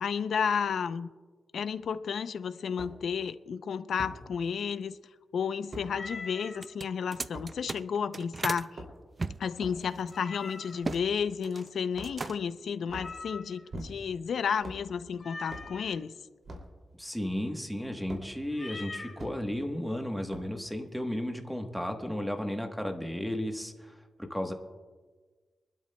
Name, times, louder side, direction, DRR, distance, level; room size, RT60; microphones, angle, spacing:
voice 1, 0.0-1.1 1.5-5.0 5.3-8.8 9.4-16.1, left 6 dB, 75° left, 12 dB, 0.5 m, -32 dB
sound 1, 1.8-1.9 2.8-2.9 4.0-4.2 5.7-5.9 7.3-7.5 8.6-9.1 9.6-9.8 10.8-11.1 11.9-12.3 12.8-13.1 13.7-14.2 14.6-14.9 15.5-15.7 16.4-16.7 18.1-18.3 19.2-19.4 20.3-20.6, right 1 dB, 45° right, 2.6 m, -42 dB
Meow, 5.9-6.6 10.1-10.9 12.9-13.7 15.2-15.9 18.5-19.2, left 3 dB, 35° left, 2.2 m, -43 dB
sound 2, 6.5-8.7 9.2-11.0 11.3-11.7 12.0-12.6, right 3 dB, 30° right, 0.3 m, -37 dB
voice 2, 17.0-24.5, left 1 dB, ahead, 4 dB, 1.1 m, -34 dB
25.0 x 12.5 x 2.2 m, 1.4 s
wide cardioid pair, 140°, 0 cm